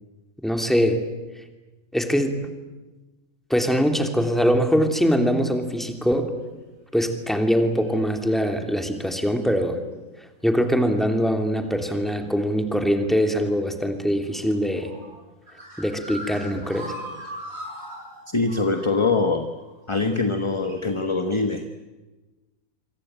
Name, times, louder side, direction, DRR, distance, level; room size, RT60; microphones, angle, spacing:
voice 1, 0.4-1.0 1.9-2.4 3.5-6.3 6.9-9.8 10.4-14.9 15.8-16.9, equal, ahead, 5 dB, 3.0 m, -22 dB
sound 1, 6.1-6.2 7.0-7.3 7.5-8.3 9.0-9.3 11.6-12.3 14.0-21.0, equal, 50° right, 7.7 m, -40 dB
voice 2, 18.3-19.5 19.9-21.7, left 3 dB, 20° left, 7 dB, 1.4 m, -23 dB
27.0 x 24.5 x 9.1 m, 1.2 s
omnidirectional pair, 1.4 m